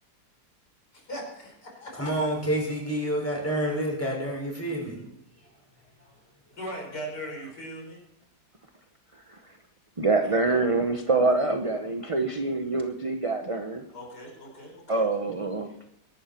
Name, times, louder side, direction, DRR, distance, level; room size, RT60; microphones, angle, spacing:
voice 1, 0.9-2.2 6.5-8.0 13.9-15.0, equal, 60° left, 5.7 m, -39 dB
voice 2, 2.0-5.0, right 1 dB, 5° left, 5.8 m, -28 dB
voice 3, 9.1-9.5 10.0-13.8 14.9-15.7, right 3 dB, 30° right, 0.6 m, -26 dB
21.5 x 12.0 x 4.5 m
omnidirectional pair, 2.0 m